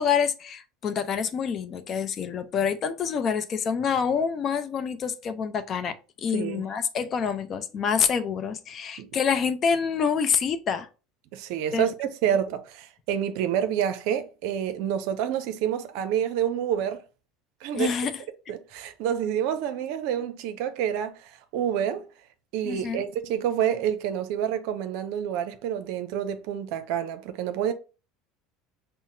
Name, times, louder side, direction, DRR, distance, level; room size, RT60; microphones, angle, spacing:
voice 1, 0.0-10.9 11.7-11.9 17.7-18.1 22.6-23.0, left 6 dB, 40° left, 0.5 m, -27 dB
voice 2, 6.3-6.6 9.0-9.1 11.3-17.0 17.6-17.9 18.5-22.1 22.5-27.7, right 9 dB, 70° right, 0.5 m, -28 dB
5.6 x 2.0 x 2.6 m
supercardioid pair, 95°, 0 cm